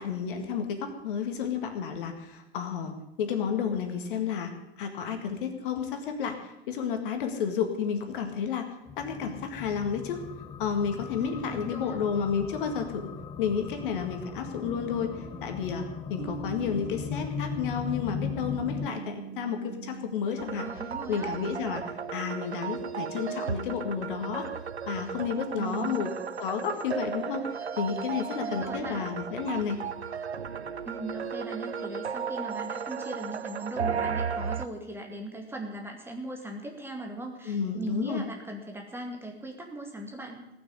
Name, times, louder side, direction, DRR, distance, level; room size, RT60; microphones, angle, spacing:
voice 1, 0.0-2.9 3.2-8.7 9.0-10.2 10.6-13.1 13.4-15.1 15.4-15.8 16.1-20.7 21.1-24.5 24.9-26.1 26.4-27.5 27.8-29.8 37.5-38.2, left 7 dB, 55° left, 5 dB, 1.9 m, -31 dB
sound 1, 8.9-18.9, left 7 dB, 15° left, 0.5 m, -38 dB
voice 2, 11.2-12.0 20.5-21.3 25.6-26.1 28.4-29.0 30.9-40.4, right 2 dB, 5° right, 1 dB, 2.2 m, -39 dB
sound 2, 14.6-20.2, right 7 dB, 25° right, 0.8 m, -43 dB
sound 3, 20.4-34.7, right 6 dB, 85° right, 0.7 m, -35 dB
18.5 x 6.2 x 8.3 m, 0.89 s
figure-of-eight pair, 95°, 32 cm